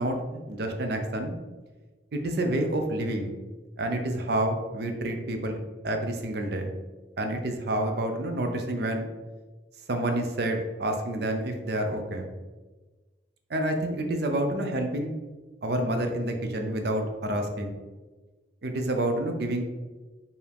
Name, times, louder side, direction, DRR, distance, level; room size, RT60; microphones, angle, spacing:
voice 1, 0.0-1.4 2.1-3.3 3.8-5.6 5.8-6.7 7.2-9.1 9.9-12.3 13.5-15.1 15.6-17.8 18.6-19.6, right 1 dB, 60° right, 4 dB, 0.5 m, -28 dB
4.6 x 2.7 x 3.4 m, 1.2 s
head